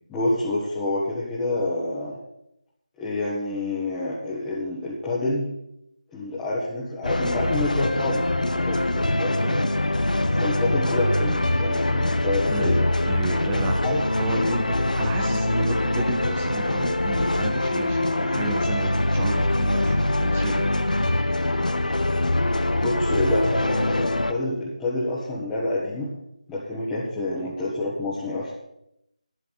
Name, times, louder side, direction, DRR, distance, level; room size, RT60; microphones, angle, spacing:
voice 1, 0.1-2.2 3.0-5.5 6.1-9.6 10.4-12.8 13.6-14.0 14.3-14.4 22.8-26.1 26.5-28.5, left 2 dB, 10° left, -9 dB, 1.5 m, -28 dB
sound 1, 7.0-24.3, left 1 dB, 90° left, 1.1 m, -23 dB
voice 2, 12.5-13.8 14.2-20.7 27.4-27.5, right 4 dB, 10° right, 2 dB, 0.7 m, -33 dB
11.0 x 6.4 x 8.3 m, 0.81 s
figure-of-eight pair, 165°, 4 cm